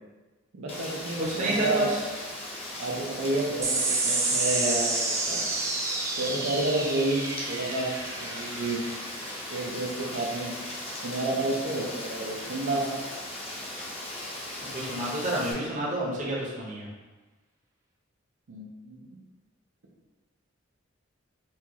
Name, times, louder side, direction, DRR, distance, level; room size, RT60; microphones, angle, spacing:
voice 1, 0.5-1.9 2.8-5.5 6.1-7.9 8.2-8.8 9.5-10.5 11.0-12.9 18.5-19.0, right 2 dB, 85° right, -2 dB, 0.6 m, -30 dB
Rain, 0.7-15.5, left 1 dB, 30° left, 0.6 m, -38 dB
voice 2, 1.2-2.0 14.7-16.9, right 1 dB, 40° right, -4 dB, 0.7 m, -29 dB
sound 1, 3.6-10.4, right 3 dB, 15° right, 0.3 m, -30 dB
4.3 x 2.3 x 2.8 m, 1.2 s
head